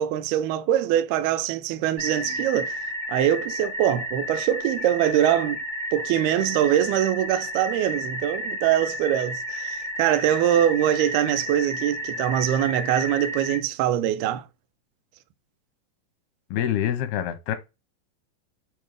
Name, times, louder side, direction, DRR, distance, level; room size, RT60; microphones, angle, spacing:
voice 1, 0.0-2.8 3.1-5.6 5.9-14.5, right 11 dB, 85° right, 2.5 m, -23 dB
sound 1, 2.0-13.6, equal, 65° right, 1.0 m, -32 dB
voice 2, 16.5-17.6, left 11 dB, 90° left, 2.9 m, -26 dB
8.6 x 3.5 x 3.3 m
omnidirectional pair, 4.4 m